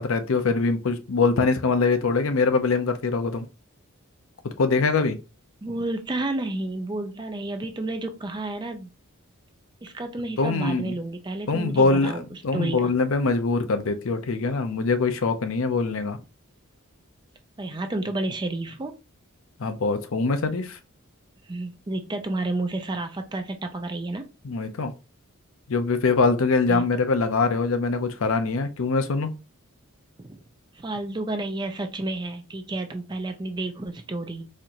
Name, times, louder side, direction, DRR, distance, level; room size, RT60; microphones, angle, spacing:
voice 1, 0.0-3.5 4.6-5.2 10.4-10.9 11.5-16.2 19.6-20.8 24.4-24.9 25.7-29.3, left 4 dB, 65° left, 0.5 m, -23 dB
voice 2, 5.6-8.9 9.8-12.9 17.6-18.9 21.5-24.3 26.7-26.8 30.2-30.4 30.7-34.5, right 2 dB, 20° right, 0.4 m, -31 dB
4.2 x 2.5 x 2.8 m
head